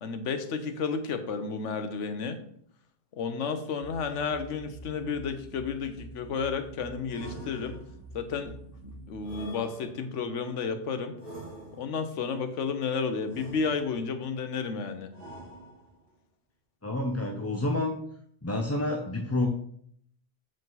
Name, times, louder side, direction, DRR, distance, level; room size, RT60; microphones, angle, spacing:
voice 1, 0.0-2.4 3.1-7.8 8.1-8.6 8.8-11.2 11.8-15.1, left 5 dB, 85° left, 8 dB, 1.2 m, -32 dB
sound 1, 3.8-9.3, right 2 dB, 75° right, 1.6 m, -47 dB
sound 2, 7.1-8.1 9.2-10.3 11.2-12.1 13.3-14.2 15.1-16.1, right 1 dB, 30° right, 2.7 m, -45 dB
voice 2, 16.8-18.0 18.4-19.5, left 2 dB, 20° left, 1 dB, 0.5 m, -28 dB
7.5 x 4.9 x 4.0 m, 0.65 s
omnidirectional pair, 1.2 m